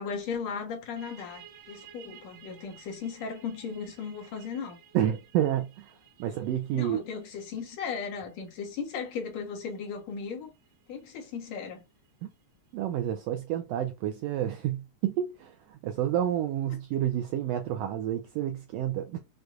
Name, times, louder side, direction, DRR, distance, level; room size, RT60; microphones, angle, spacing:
voice 1, 0.0-4.8 6.3-6.4 6.7-10.5 10.9-11.8, left 6 dB, 65° left, 2.3 m, -36 dB
sound 1, 1.0-12.3, right 9 dB, 60° right, 1.3 m, -56 dB
voice 2, 4.9-5.9 6.2-7.0 12.2-12.3 12.7-19.2, right 11 dB, 85° right, 1.4 m, -29 dB
6.3 x 2.3 x 2.5 m
omnidirectional pair, 3.3 m